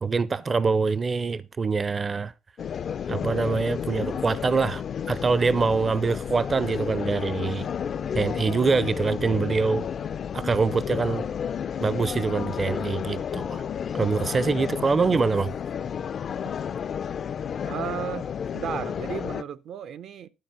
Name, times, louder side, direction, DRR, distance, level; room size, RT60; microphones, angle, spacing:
voice 1, 0.0-2.3 3.1-7.7 8.1-9.9 10.3-11.3 11.8-13.6 13.9-15.5, right 4 dB, 35° right, 0.5 m, -24 dB
sound 1, 2.6-19.4, left 8 dB, 55° left, 0.4 m, -31 dB
voice 2, 17.6-20.3, right 9 dB, 75° right, 0.6 m, -34 dB
12.0 x 4.3 x 5.7 m
cardioid pair, 90°, 0 cm